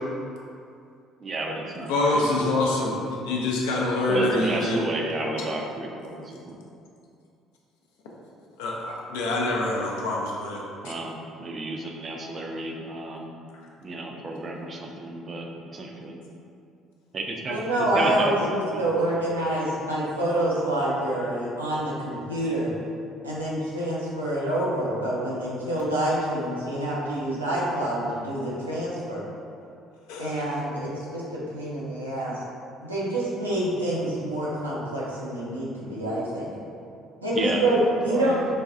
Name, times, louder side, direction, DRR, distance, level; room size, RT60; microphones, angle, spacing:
voice 1, 1.2-1.9 4.1-6.6 10.8-13.3 13.8-16.2 17.1-17.6 17.9-18.8 37.3-37.7 38.1-38.4, right 2 dB, 35° right, 1 dB, 0.4 m, -31 dB
voice 2, 1.9-4.8 8.6-10.9 30.1-30.4, left 2 dB, 65° left, -2 dB, 0.4 m, -26 dB
voice 3, 17.5-22.7 23.2-29.2 30.2-32.4 32.8-36.5 37.2-38.5, right 1 dB, 85° right, -7 dB, 0.5 m, -27 dB
4.1 x 2.2 x 2.5 m, 2.5 s
figure-of-eight pair, 50°, 0 cm